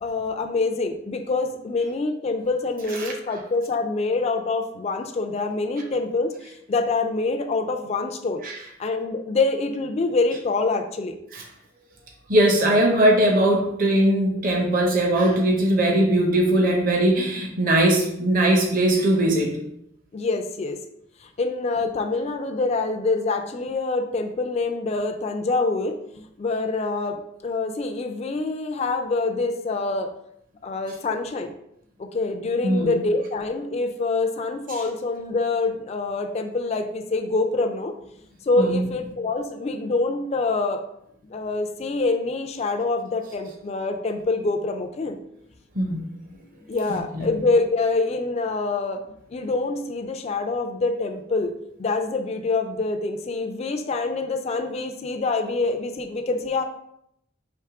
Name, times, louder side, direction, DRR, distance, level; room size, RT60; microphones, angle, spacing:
voice 1, 0.0-8.4 8.8-11.2 20.1-20.8 21.2-30.1 30.6-31.5 32.0-38.0 38.4-40.8 41.2-45.2 46.7-49.0 49.3-56.6, left 3 dB, 30° left, 5 dB, 0.3 m, -25 dB
voice 2, 12.3-19.5 32.6-32.9 38.6-38.8 45.7-46.0 46.9-47.3, right 1 dB, 45° right, 0 dB, 0.7 m, -20 dB
3.5 x 3.0 x 4.7 m, 0.77 s
head